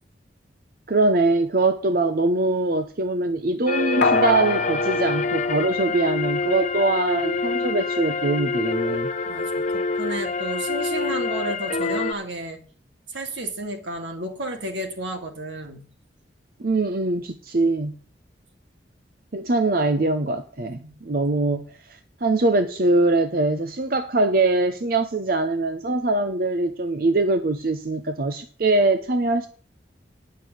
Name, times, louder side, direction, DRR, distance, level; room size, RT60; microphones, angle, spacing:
voice 1, 0.9-9.1 16.6-18.0 19.3-21.7 22.2-29.5, right 2 dB, 50° right, 0.8 m, -22 dB
sound 1, 3.7-12.1, left 3 dB, 40° left, 0.6 m, -26 dB
sound 2, 4.0-6.6 6.9-7.0, left 4 dB, 70° left, 0.9 m, -26 dB
voice 2, 9.3-12.6 13.1-15.9 20.7-21.0, right 1 dB, 80° right, 2.4 m, -32 dB
9.7 x 6.6 x 8.1 m
head